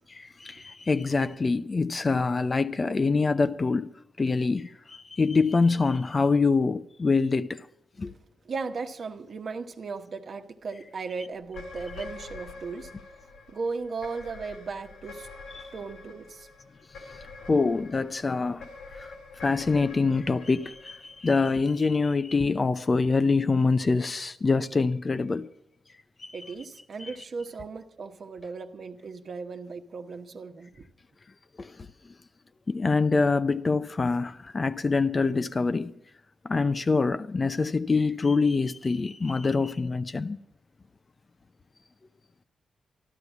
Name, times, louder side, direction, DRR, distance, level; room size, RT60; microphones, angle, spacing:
voice 1, 0.1-7.7 8.0-8.1 15.5-15.6 17.5-18.7 19.0-19.1 19.4-25.5 26.2-26.3 27.0-27.1 31.6-31.9 32.7-35.9 36.4-40.4, left 4 dB, 35° left, 0.6 m, -25 dB
voice 2, 8.4-12.9 13.5-15.3 15.7-16.5 26.3-30.9, right 4 dB, 60° right, 1.1 m, -36 dB
sound 1, 11.5-21.9, left 3 dB, 90° left, 3.7 m, -46 dB
13.5 x 12.0 x 7.1 m
cardioid pair, 65°, 0 cm